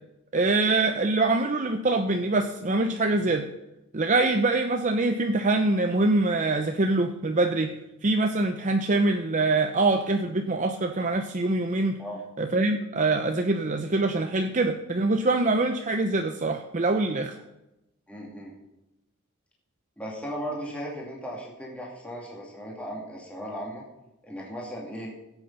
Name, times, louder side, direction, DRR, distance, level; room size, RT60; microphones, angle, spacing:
voice 1, 0.3-3.5 3.9-7.8 8.0-12.0 12.4-17.4, right 2 dB, 35° right, 6 dB, 0.7 m, -24 dB
voice 2, 18.1-18.5 20.0-23.8 24.2-25.1, equal, 5° left, -4 dB, 2.5 m, -36 dB
16.0 x 8.3 x 5.6 m, 0.93 s
head